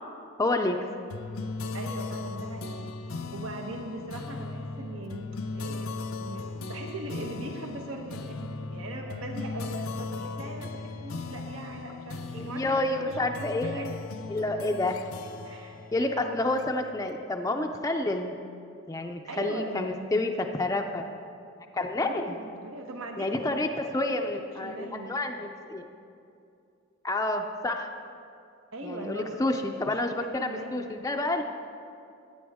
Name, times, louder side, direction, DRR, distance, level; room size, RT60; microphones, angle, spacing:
voice 1, 0.4-0.8 12.4-13.9 14.3-15.0 15.9-18.3 18.9-21.1 21.7-22.3 23.2-23.7 23.9-25.9 27.0-27.9 28.8-31.4, left 2 dB, 15° left, 3 dB, 0.4 m, -29 dB
sound 1, 1.1-17.0, left 3 dB, 90° left, 0.6 m, -37 dB
voice 2, 1.7-2.9 3.3-13.9 14.5-14.9 15.4-16.6 19.3-20.3 22.0-23.6 24.0-25.2 28.7-30.9, right 2 dB, 85° right, 2 dB, 1.1 m, -40 dB
15.5 x 9.5 x 3.6 m, 2.5 s
head